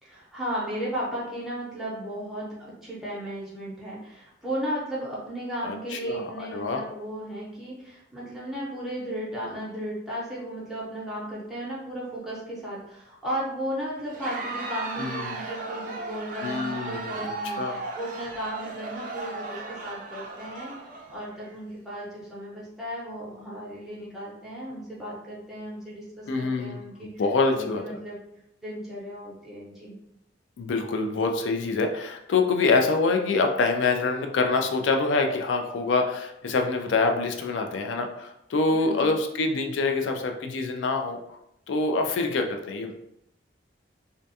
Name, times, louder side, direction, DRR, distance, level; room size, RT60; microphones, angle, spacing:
voice 1, 0.0-20.7 21.1-27.2 27.5-28.2 28.6-30.0 38.7-39.1, equal, ahead, -8 dB, 0.8 m, -35 dB
voice 2, 5.6-6.2 6.5-6.8 15.0-15.3 16.4-17.8 26.3-26.8 27.2-27.8 30.6-41.2 41.7-43.0, left 3 dB, 85° left, 4 dB, 0.4 m, -25 dB
Crowd, 14.0-21.5, right 3 dB, 45° right, 0.4 m, -36 dB
2.5 x 2.2 x 2.6 m, 0.81 s
head